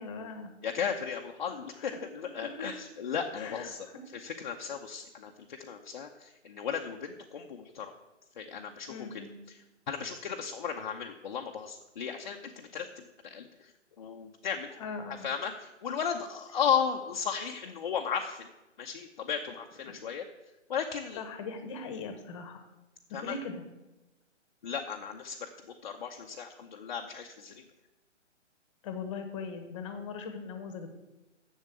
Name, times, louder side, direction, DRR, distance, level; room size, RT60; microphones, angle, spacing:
voice 1, 0.0-0.5 1.8-2.0 2.4-2.7 3.3-4.0 8.9-9.4 14.7-15.3 19.8-19.9 21.2-22.6 23.2-23.6 28.8-30.9, left 4 dB, 25° left, 7 dB, 1.2 m, -40 dB
voice 2, 0.6-3.9 4.1-5.3 5.6-7.9 8.4-9.1 9.5-9.6 9.9-12.9 13.2-13.7 14.0-14.7 15.2-18.5 18.8-20.2 20.7-21.2 23.1-23.4 24.6-25.5 25.8-27.6, left 7 dB, 40° left, 2 dB, 0.7 m, -35 dB
7.4 x 7.2 x 8.2 m, 1.0 s
hypercardioid pair, 155°, 37 cm